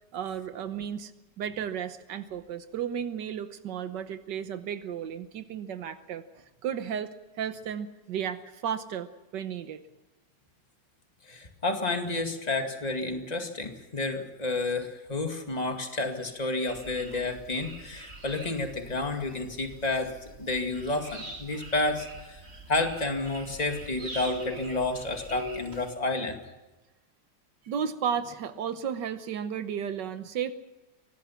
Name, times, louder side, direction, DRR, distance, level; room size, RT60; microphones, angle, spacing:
voice 1, 0.1-1.1 1.4-9.8 27.6-30.5, right 8 dB, 85° right, 10 dB, 1.6 m, -34 dB
voice 2, 11.3-22.4 22.7-26.4, left 2 dB, 20° left, 4 dB, 2.3 m, -30 dB
sound 1, 16.7-25.9, equal, 35° right, 2.5 m, -43 dB
24.0 x 19.0 x 5.8 m, 1.1 s
omnidirectional pair, 1.9 m